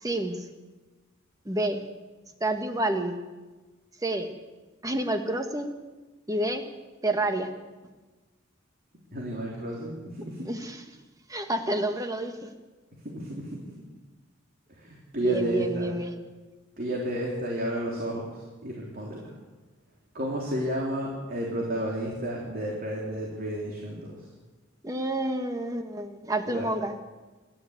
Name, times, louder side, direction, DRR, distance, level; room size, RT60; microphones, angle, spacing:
voice 1, 0.0-0.4 1.4-1.8 2.4-3.1 4.0-4.3 4.8-5.7 6.3-6.6 7.0-7.5 10.4-10.8 11.3-12.5 15.2-16.1 24.8-27.0, right 1 dB, 15° right, 6 dB, 1.7 m, -29 dB
voice 2, 9.1-10.3 13.0-13.4 14.8-15.9 16.8-18.3 18.6-19.2 20.1-24.2 26.5-26.7, equal, 45° right, -2 dB, 3.5 m, -31 dB
27.5 x 12.0 x 8.2 m, 1.2 s
head